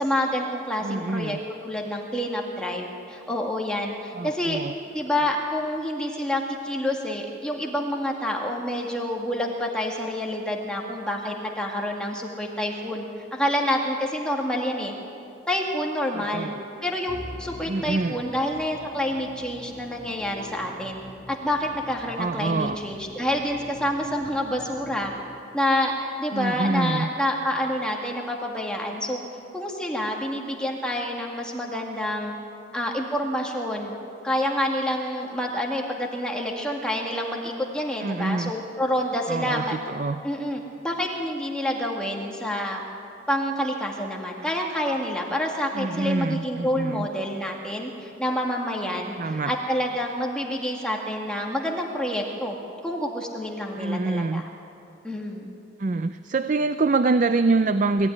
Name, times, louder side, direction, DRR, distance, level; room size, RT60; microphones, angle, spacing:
voice 1, 0.0-1.4 1.6-4.6 4.9-14.9 15.5-16.5 16.8-21.0 21.3-25.1 25.5-29.2 29.5-32.3 32.7-34.0 34.2-39.8 40.2-42.8 43.3-52.6 52.8-54.5 55.0-55.5, left 1 dB, 5° left, -1 dB, 1.9 m, -28 dB
voice 2, 0.8-1.4 4.1-4.7 5.2-5.3 16.1-16.6 17.6-18.2 22.2-22.8 26.3-27.1 38.0-38.5 39.3-40.2 45.7-47.1 49.2-49.5 53.8-54.5 55.8-58.1, right 3 dB, 40° right, 11 dB, 0.4 m, -25 dB
Musical instrument, 17.1-25.6, left 1 dB, 25° left, 1.3 m, -44 dB
21.5 x 15.5 x 9.9 m, 2.8 s
head